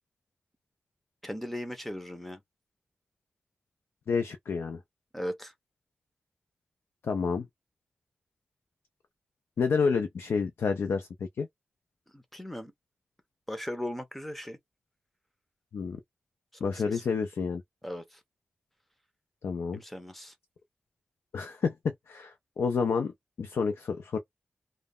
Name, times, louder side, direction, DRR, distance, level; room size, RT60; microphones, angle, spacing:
voice 1, 1.2-2.4 5.1-5.5 12.1-12.7 13.5-14.6 16.7-17.0 17.8-18.2 19.7-20.3, left 1 dB, 5° left, 0.5 m, -38 dB
voice 2, 4.1-4.8 7.0-7.5 9.6-11.1 11.4-11.5 15.7-16.0 16.6-17.6 19.4-19.8 21.3-24.2, left 5 dB, 75° left, 0.4 m, -29 dB
2.1 x 2.0 x 3.5 m
wide cardioid pair, 150°, 4 cm